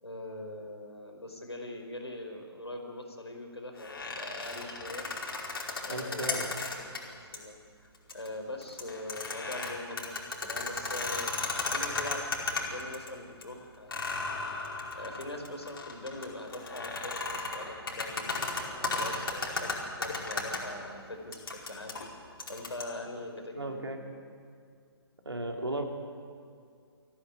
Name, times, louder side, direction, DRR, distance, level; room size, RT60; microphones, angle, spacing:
voice 1, 0.0-5.1 5.8-6.6 6.9-14.3 14.9-22.0 22.5-24.2, left 1 dB, 80° left, 4 dB, 4.8 m, -42 dB
sound 1, 3.8-7.0 7.3-7.4 7.9-8.3 8.6-13.1 13.4-13.5 13.9-20.6 21.3-22.8, left 3 dB, 60° left, 5.0 m, -35 dB
voice 2, 5.9-6.6 23.5-24.0 25.3-25.9, right 1 dB, 75° right, 3 dB, 3.6 m, -35 dB
24.0 x 16.5 x 9.4 m, 2.2 s
figure-of-eight pair, 135°, 14 cm